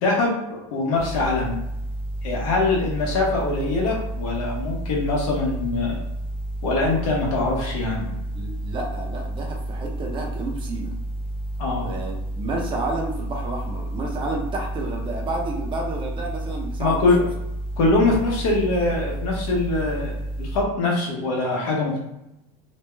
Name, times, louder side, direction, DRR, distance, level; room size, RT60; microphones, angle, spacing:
voice 1, 0.0-1.6 2.2-6.0 6.6-8.1 11.6-11.9 16.8-17.2 17.8-20.1 20.4-22.0, left 3 dB, 80° left, -3 dB, 1.3 m, -23 dB
sound 1, 0.9-20.6, right 1 dB, 30° left, 0.5 m, -31 dB
voice 2, 8.3-10.9 11.8-17.3, right 2 dB, 30° right, 0 dB, 0.8 m, -30 dB
3.2 x 2.3 x 3.3 m, 0.87 s
supercardioid pair, 135°, 18 cm